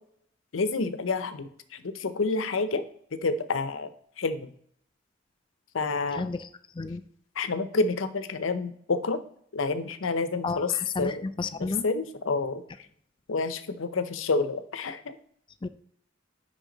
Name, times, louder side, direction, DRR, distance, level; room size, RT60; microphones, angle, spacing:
voice 1, 0.5-2.8 3.2-3.9 4.2-4.5 5.7-6.3 7.4-9.2 9.5-10.7 11.0-11.2 11.8-12.6 13.3-15.2, left 3 dB, 75° left, 11 dB, 0.6 m, -28 dB
voice 2, 6.1-6.5 6.8-7.0 10.4-11.8 15.6-15.7, left 3 dB, 25° left, 12 dB, 0.3 m, -32 dB
10.0 x 3.6 x 3.9 m, 0.66 s
head